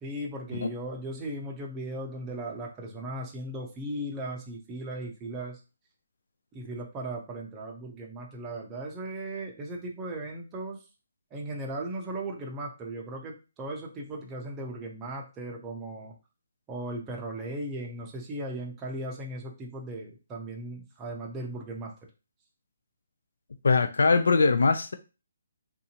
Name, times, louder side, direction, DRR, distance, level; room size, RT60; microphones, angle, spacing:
voice 1, 0.0-5.6 6.5-10.8 11.3-16.1 16.7-21.9, right 1 dB, 10° right, 0.6 m, -37 dB
voice 2, 23.6-24.9, left 4 dB, 75° left, 0.4 m, -21 dB
3.6 x 2.6 x 2.8 m
hypercardioid pair, 170°, 0 cm